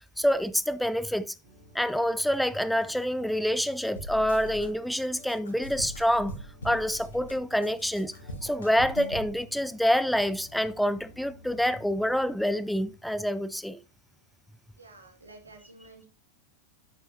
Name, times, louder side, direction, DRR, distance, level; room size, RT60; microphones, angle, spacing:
voice 1, 0.2-1.4 1.7-6.3 6.6-8.1 8.4-13.8, equal, ahead, 0.3 m, -27 dB
sound 1, 1.4-12.9, left 1 dB, 50° right, 2.2 m, -53 dB
sound 2, 4.0-4.7 4.9-7.3 7.6-9.3, equal, 70° left, 3.0 m, -40 dB
voice 2, 14.8-16.1, right 2 dB, 80° right, 2.0 m, -51 dB
8.2 x 7.9 x 2.8 m
figure-of-eight pair, 90°, 0 cm